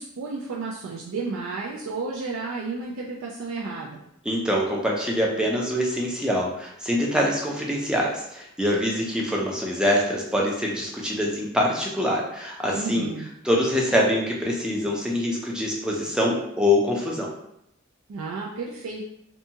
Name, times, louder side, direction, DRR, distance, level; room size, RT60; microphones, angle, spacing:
voice 1, 0.0-4.0 12.7-13.3 18.1-19.1, right 3 dB, 75° right, -3 dB, 0.3 m, -32 dB
voice 2, 4.3-13.1 13.4-17.3, left 1 dB, 5° right, -3 dB, 0.4 m, -24 dB
2.6 x 2.2 x 2.7 m, 0.78 s
head